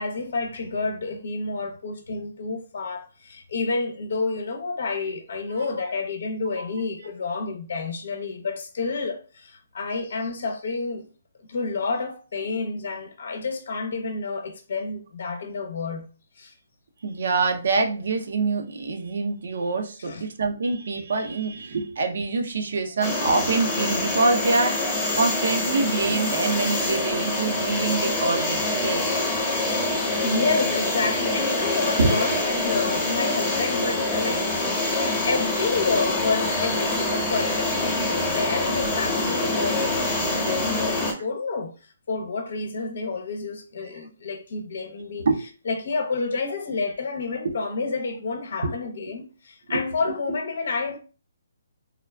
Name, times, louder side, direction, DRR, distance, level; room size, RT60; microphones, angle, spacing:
voice 1, 0.0-11.1 11.5-16.1 16.4-16.5 20.0-20.3 29.6-29.9 30.2-41.7 42.1-45.3 45.7-51.0, left 4 dB, 65° left, 0.7 m, -29 dB
voice 2, 17.0-29.2 31.8-32.4 45.3-45.4 47.4-47.6 48.6-48.7 49.7-49.8, right 3 dB, 65° right, 0.6 m, -25 dB
sound 1, 23.0-41.1, left 2 dB, 15° left, 0.9 m, -25 dB
3.5 x 2.3 x 2.2 m
hypercardioid pair, 145°, 0 cm